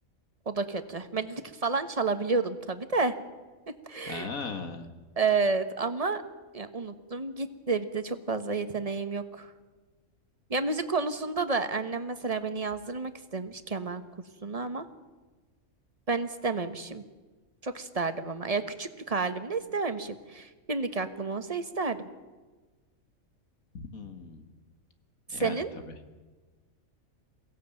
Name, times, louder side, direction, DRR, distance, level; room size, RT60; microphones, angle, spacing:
voice 1, 0.5-3.1 3.9-4.3 5.2-6.2 6.5-9.5 10.5-14.0 14.4-14.8 16.1-17.0 17.6-22.0 25.3-25.7, right 4 dB, 30° right, 10 dB, 1.3 m, -30 dB
voice 2, 4.1-4.9 23.7-24.5 25.3-25.9, left 4 dB, 90° left, 8 dB, 2.3 m, -38 dB
22.5 x 16.5 x 9.1 m, 1.3 s
omnidirectional pair, 1.4 m